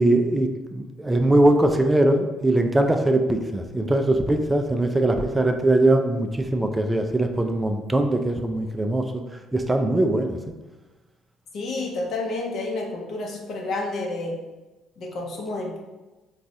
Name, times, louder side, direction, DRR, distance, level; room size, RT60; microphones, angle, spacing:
voice 1, 0.0-9.0 9.5-10.4, right 1 dB, 15° right, 5 dB, 0.4 m, -21 dB
voice 2, 11.5-14.4 15.0-15.8, left 2 dB, 60° left, -1 dB, 0.7 m, -30 dB
3.9 x 2.3 x 2.7 m, 1.1 s
hypercardioid pair, 55°, 0 cm